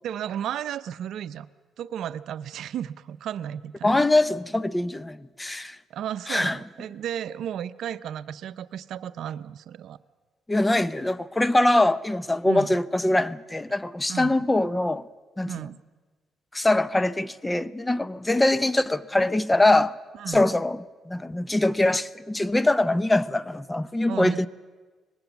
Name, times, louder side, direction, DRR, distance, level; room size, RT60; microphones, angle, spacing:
voice 1, 0.0-1.5 1.8-4.0 5.9-10.0 12.4-12.8 14.1-14.4 15.5-15.8 20.1-20.4 24.1-24.5, right 9 dB, 75° right, 0.6 m, -33 dB
voice 2, 3.8-5.8 6.3-6.6 10.5-15.0 15.4-15.5 16.5-19.9 20.3-24.5, left 2 dB, 15° left, 0.6 m, -23 dB
24.0 x 20.0 x 7.1 m
cardioid pair, 90°, 0 cm